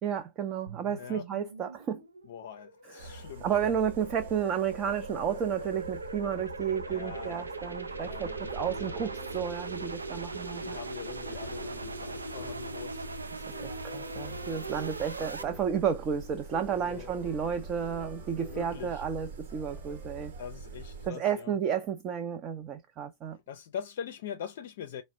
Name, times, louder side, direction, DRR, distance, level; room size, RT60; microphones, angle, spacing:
voice 1, 0.0-2.0 3.0-3.1 3.4-10.8 13.4-20.3 21.0-23.4, right 8 dB, 30° right, 0.6 m, -32 dB
sound 1, 0.7-15.4, right 3 dB, 80° right, 0.5 m, -40 dB
voice 2, 2.2-3.7 6.9-7.5 8.0-9.0 10.6-13.1 14.5-15.1 16.8-17.1 18.5-19.0 20.4-21.6 23.5-25.0, left 8 dB, 55° left, 0.5 m, -43 dB
sound 2, 3.0-21.1, right 2 dB, 60° right, 1.1 m, -45 dB
sound 3, 8.2-20.2, right 1 dB, ahead, 0.9 m, -51 dB
4.9 x 2.1 x 3.8 m
figure-of-eight pair, 90°, 0 cm